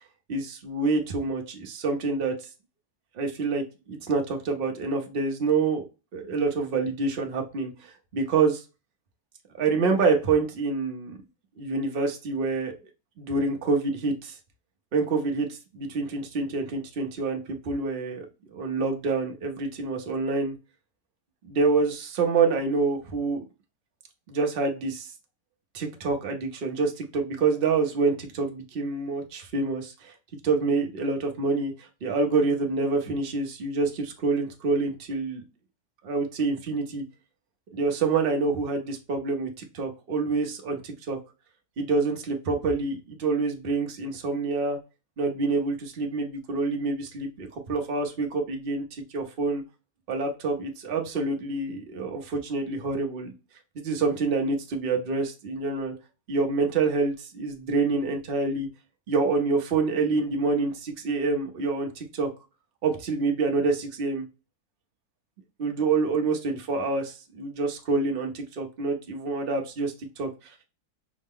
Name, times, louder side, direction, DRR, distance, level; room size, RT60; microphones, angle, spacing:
voice 1, 0.3-2.4 3.1-3.6 3.9-5.8 6.1-8.6 9.5-11.2 11.6-12.7 13.2-14.3 14.9-18.3 18.5-20.5 21.4-23.4 24.3-25.1 25.7-30.1 30.4-31.7 32.0-35.4 36.0-37.0 37.7-41.2 41.8-44.8 45.2-49.6 50.1-53.3 53.7-55.9 56.3-58.7 59.1-62.3 62.8-64.2 65.6-70.5, right 4 dB, 50° right, 3 dB, 0.7 m, -27 dB
4.9 x 2.1 x 3.6 m, 0.30 s
omnidirectional pair, 1.7 m